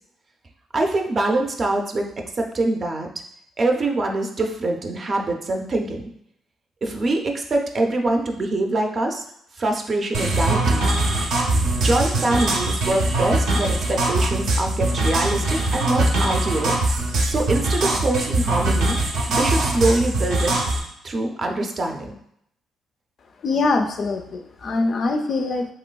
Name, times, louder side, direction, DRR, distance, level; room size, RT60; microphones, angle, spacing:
voice 1, 0.7-2.1 2.4-3.1 3.6-6.1 6.8-9.2 9.6-10.8 11.8-16.8 17.3-19.0 19.3-20.5 21.0-22.1, right 2 dB, 40° right, 3 dB, 0.5 m, -24 dB
sound 1, 10.1-20.8, right 2 dB, 80° right, 0.6 m, -22 dB
voice 2, 23.4-25.7, left 3 dB, 55° left, 5 dB, 0.4 m, -23 dB
3.1 x 2.9 x 2.2 m, 0.72 s
cardioid pair, 90°, 0 cm